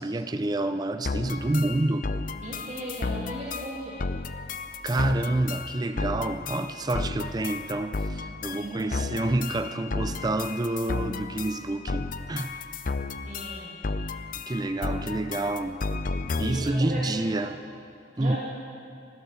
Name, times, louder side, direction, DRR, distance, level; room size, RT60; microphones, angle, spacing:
voice 1, 0.0-2.1 4.8-12.6 14.5-15.8 16.4-17.5 18.2-18.4, right 2 dB, 20° right, 0.4 m, -28 dB
sound 1, 1.0-16.8, left 3 dB, 45° left, 0.5 m, -33 dB
voice 2, 2.4-4.0 8.5-9.1 13.2-13.8 14.8-15.0 15.3-15.5 16.4-17.0 17.3-17.4 18.2-18.4, right 1 dB, 35° right, 2.0 m, -37 dB
15.5 x 12.5 x 7.0 m
head